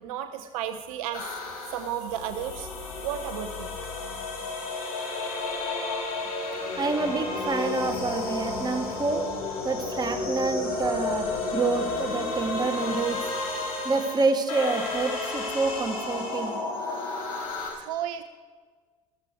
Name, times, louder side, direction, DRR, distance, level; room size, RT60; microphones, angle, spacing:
voice 1, 0.0-1.4 1.7-2.7 3.0-4.3 17.7-18.2, right 10 dB, 65° right, 9 dB, 0.9 m, -34 dB
sound 1, 1.1-17.7, left 3 dB, 75° left, 3.8 m, -32 dB
voice 2, 6.2-9.3 9.6-16.6 17.7-17.8, right 3 dB, 20° right, 5 dB, 2.0 m, -28 dB
sound 2, 6.4-13.8, left 3 dB, 50° left, 3.3 m, -36 dB
14.5 x 14.0 x 4.7 m, 1.4 s
figure-of-eight pair, 70°, 19 cm